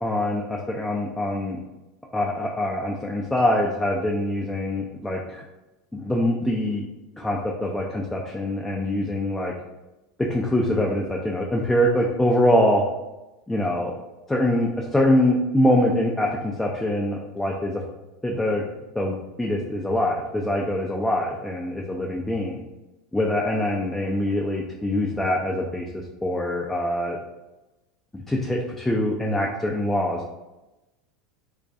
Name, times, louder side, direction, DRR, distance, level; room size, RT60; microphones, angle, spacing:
voice 1, 0.0-1.6 2.1-5.4 5.9-6.9 7.2-9.5 10.3-12.8 13.5-13.9 14.3-17.8 18.2-18.6 19.0-22.6 23.1-25.9 26.2-27.2 28.1-30.2, left 1 dB, 5° left, -1 dB, 0.3 m, -24 dB
2.4 x 2.2 x 2.5 m, 1.0 s
hypercardioid pair, 90°, 3 cm